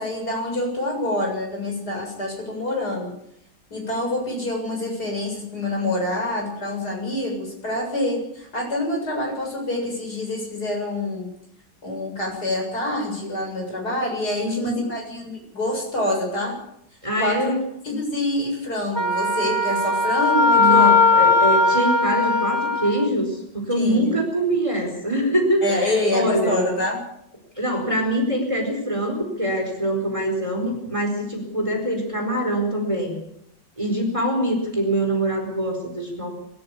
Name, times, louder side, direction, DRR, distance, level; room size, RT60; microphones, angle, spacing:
voice 1, 0.0-3.1 3.7-11.3 11.8-16.6 17.2-17.5 17.8-21.0 23.8-24.2 25.6-27.0, left 1 dB, 60° left, 1 dB, 8.0 m, -26 dB
voice 2, 14.4-14.8 17.0-17.6 20.5-26.6 27.6-33.2 33.8-36.3, right 1 dB, 15° right, 3 dB, 4.6 m, -24 dB
Wind instrument woodwind instrument, 18.9-23.1, left 3 dB, 15° left, 1.9 m, -18 dB
24.0 x 13.5 x 8.5 m, 0.76 s
omnidirectional pair, 1.9 m